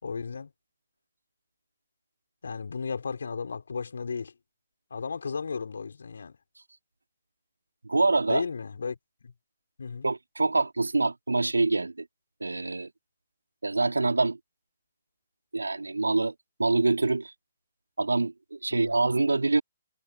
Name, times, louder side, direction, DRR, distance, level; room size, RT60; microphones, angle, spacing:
voice 1, 0.0-0.5 2.4-4.3 4.9-6.3 8.3-9.3 9.8-10.1 18.7-19.0, left 5 dB, 60° left, 5.2 m, -34 dB
voice 2, 7.8-8.4 10.0-12.1 12.4-12.9 13.6-14.4 15.5-16.3 16.6-17.3 18.0-19.6, right 3 dB, 75° right, 3.9 m, -25 dB
figure-of-eight pair, 125°, 0 cm